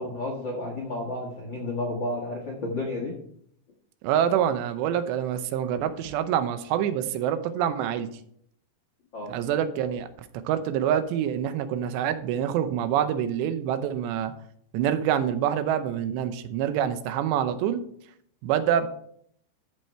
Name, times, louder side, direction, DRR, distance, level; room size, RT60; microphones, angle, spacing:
voice 1, 0.0-3.1 9.1-9.4, left 2 dB, 65° left, -2 dB, 1.1 m, -31 dB
voice 2, 4.0-8.1 9.3-10.1 10.4-14.3 14.7-17.8 18.4-18.9, right 9 dB, 85° right, 10 dB, 2.9 m, -26 dB
14.0 x 5.5 x 4.5 m, 0.65 s
omnidirectional pair, 5.0 m